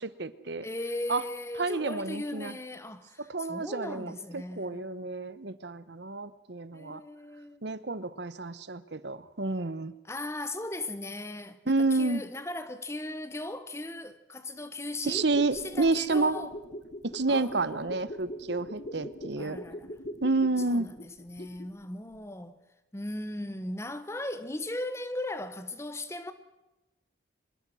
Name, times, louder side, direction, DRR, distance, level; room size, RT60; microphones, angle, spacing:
voice 1, 0.0-0.6 1.1-1.2 1.6-2.5 3.2-7.0 7.6-9.9 11.7-12.2 15.0-16.5 17.0-19.6 20.2-20.9, right 3 dB, 65° right, 1.0 m, -30 dB
voice 2, 0.6-4.8 6.7-7.6 10.0-16.5 17.3-18.0 19.4-19.9 20.7-22.6 22.9-26.3, left 1 dB, 15° left, 1.1 m, -38 dB
sound 1, 15.0-21.9 22.1-22.2, equal, 40° left, 1.4 m, -42 dB
25.5 x 21.5 x 6.3 m
head